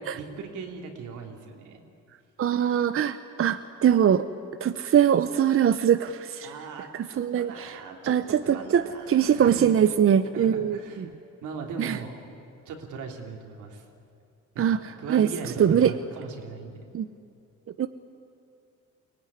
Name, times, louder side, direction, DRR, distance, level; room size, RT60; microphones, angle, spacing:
voice 1, 0.0-1.8 6.4-8.1 8.4-9.8 10.3-11.1 11.4-12.1 12.6-13.8 14.5-16.9, right 4 dB, 85° right, 2 dB, 3.2 m, -39 dB
voice 2, 2.4-4.2 4.6-6.5 7.2-7.7 8.1-11.0 11.8-12.0 14.6-14.8 15.1-15.3 15.6-15.9 16.9-17.1 17.8-17.9, right 9 dB, 45° right, 11 dB, 0.8 m, -22 dB
24.0 x 18.0 x 10.0 m, 2.6 s
cardioid pair, 90°, 30 cm